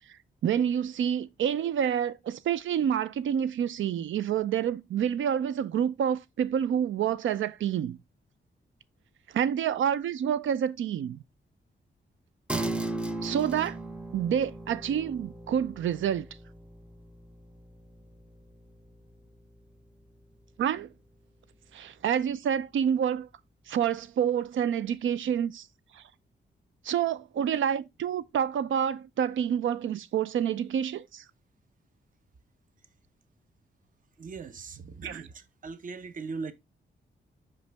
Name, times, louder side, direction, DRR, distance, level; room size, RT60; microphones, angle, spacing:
voice 1, 0.4-8.0 9.3-11.2 13.2-13.8 14.1-16.3 20.6-20.9 21.7-23.3 23.7-25.7 25.9-26.0 26.8-31.2 35.0-35.2, right 9 dB, 85° right, 0.5 m, -28 dB
sound 1, 12.5-22.2, right 2 dB, 5° right, 0.5 m, -39 dB
voice 2, 34.2-36.5, right 4 dB, 45° right, 0.7 m, -39 dB
5.4 x 5.1 x 3.4 m
wide cardioid pair, 145°, 20 cm